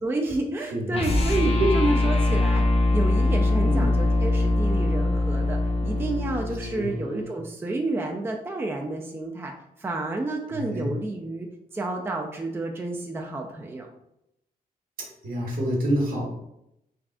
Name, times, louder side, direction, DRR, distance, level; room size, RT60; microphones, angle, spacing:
voice 1, 0.0-2.6 2.9-9.5 9.8-11.5 11.7-13.9, right 2 dB, 15° right, 1 dB, 0.4 m, -30 dB
sound 1, 0.9-7.3, left 2 dB, 40° left, 0.5 m, -23 dB
voice 2, 3.6-3.9 6.7-6.9 10.5-10.9 15.0-16.3, right 1 dB, 65° right, -2 dB, 1.1 m, -27 dB
3.5 x 2.4 x 2.4 m, 0.81 s
cardioid pair, 75°, 16 cm